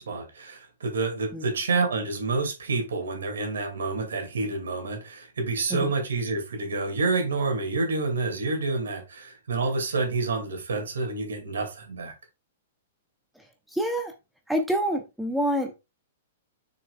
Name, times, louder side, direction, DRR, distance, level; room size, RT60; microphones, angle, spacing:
voice 1, 0.0-12.1, right 3 dB, 65° right, 2.3 m, -28 dB
voice 2, 13.7-14.1 14.5-15.7, right 1 dB, ahead, 0.7 m, -27 dB
6.6 x 6.1 x 2.4 m
figure-of-eight pair, 105°, 0 cm